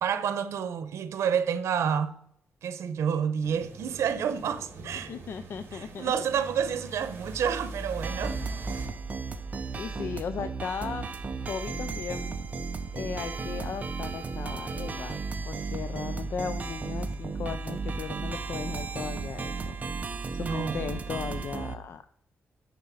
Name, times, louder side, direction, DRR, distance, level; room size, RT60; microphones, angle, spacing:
voice 1, 0.0-2.1 2.6-5.1 5.7-8.4 15.7-16.1 20.4-20.8, right 7 dB, 85° right, 0.9 m, -29 dB
sound 1, 3.4-8.9, right 2 dB, 50° right, 2.5 m, -40 dB
voice 2, 5.1-6.1 9.8-11.1 11.4-12.3 12.9-15.2 15.5-19.7 20.3-22.0, left 7 dB, 55° left, 0.5 m, -36 dB
sound 2, 8.0-21.8, right 4 dB, 30° right, 0.8 m, -34 dB
10.5 x 4.2 x 6.3 m
wide cardioid pair, 150°, 5 cm